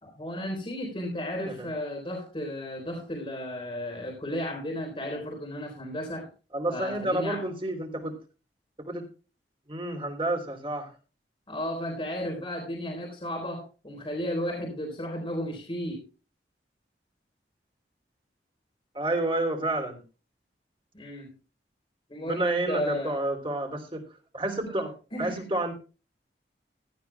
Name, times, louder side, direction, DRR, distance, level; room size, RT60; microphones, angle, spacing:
voice 1, 0.0-6.3 6.7-7.4 11.5-16.0 20.9-21.3 22.1-23.2 25.1-25.4, left 1 dB, 30° left, 1 dB, 3.7 m, -34 dB
voice 2, 6.5-8.2 8.8-9.1 9.7-10.9 18.9-20.0 22.2-24.0 24.3-25.7, right 2 dB, 30° right, 4 dB, 2.9 m, -30 dB
16.0 x 13.5 x 2.2 m, 0.33 s
head